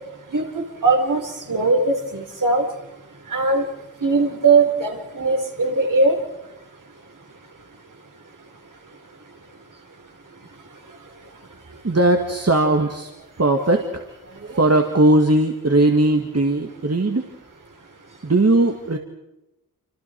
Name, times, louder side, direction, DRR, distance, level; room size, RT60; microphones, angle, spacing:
voice 1, 0.3-2.6 3.3-3.7 4.0-6.2, right 3 dB, 60° right, 2 dB, 4.7 m, -20 dB
voice 2, 11.8-13.1 13.4-17.3 18.2-19.0, right 2 dB, 45° right, 4 dB, 2.1 m, -19 dB
29.5 x 26.5 x 4.7 m, 0.95 s
wide cardioid pair, 75°, 36 cm